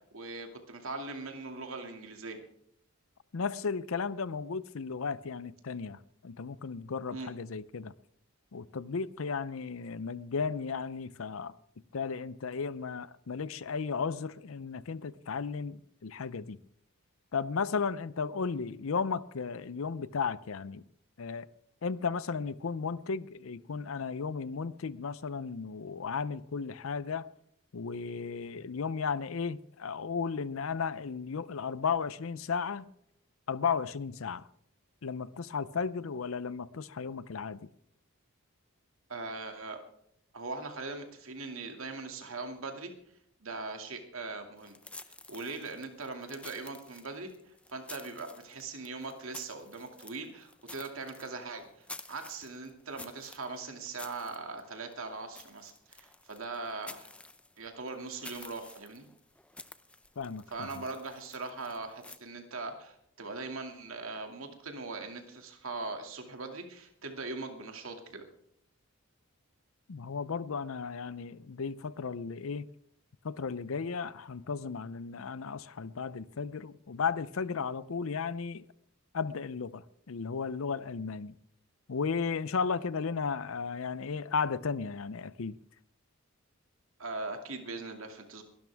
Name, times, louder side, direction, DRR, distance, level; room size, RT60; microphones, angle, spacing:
voice 1, 0.1-2.4 7.1-7.3 39.1-39.8 40.3-42.9 43.4-44.8 45.3-47.3 47.7-51.7 52.1-57.1 57.6-59.0 60.5-68.2 87.0-88.4, right 3 dB, 70° right, 2.4 m, -40 dB
voice 2, 3.3-7.9 8.5-11.5 11.9-16.6 17.3-20.8 21.2-21.5 21.8-27.3 27.7-32.9 33.5-34.5 35.0-37.6 60.2-60.8 69.9-72.7 73.2-78.7 79.1-81.3 81.9-85.6, left 5 dB, 70° left, 0.6 m, -34 dB
sound 1, 44.6-62.2, left 2 dB, 5° left, 0.5 m, -51 dB
21.5 x 12.5 x 3.5 m
head